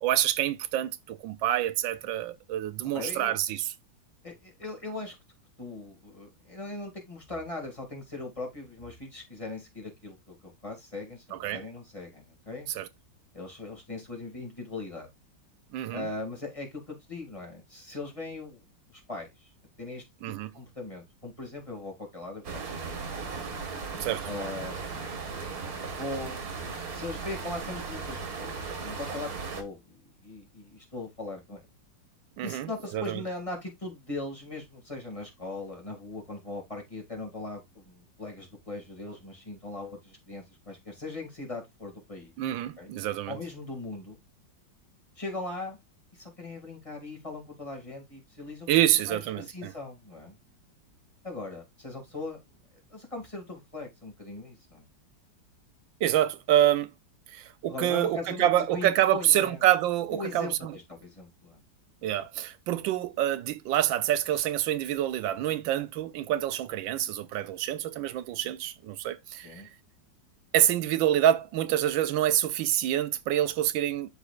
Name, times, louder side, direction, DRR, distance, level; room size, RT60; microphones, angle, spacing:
voice 1, 0.0-3.6 11.3-11.6 12.7-12.9 15.7-16.0 20.2-20.5 24.0-24.3 32.4-33.2 42.4-43.4 48.7-49.7 56.0-56.9 57.3-60.7 62.0-69.5 70.5-74.1, right 12 dB, 85° right, 1.4 m, -27 dB
voice 2, 2.9-3.3 4.2-5.1 5.6-12.7 13.3-15.1 15.9-18.6 18.9-19.5 19.8-20.0 20.5-23.3 24.3-24.8 25.9-26.4 26.9-29.9 30.2-31.7 32.4-42.3 42.8-42.9 43.3-44.2 45.2-45.8 46.1-48.7 49.1-50.4 51.2-52.6 52.9-54.9 57.7-59.6 60.1-61.6 69.4-69.7, left 2 dB, 15° left, 2.1 m, -39 dB
sound 1, 22.4-29.6, right 4 dB, 55° right, 1.8 m, -37 dB
12.0 x 4.2 x 2.4 m
omnidirectional pair, 2.0 m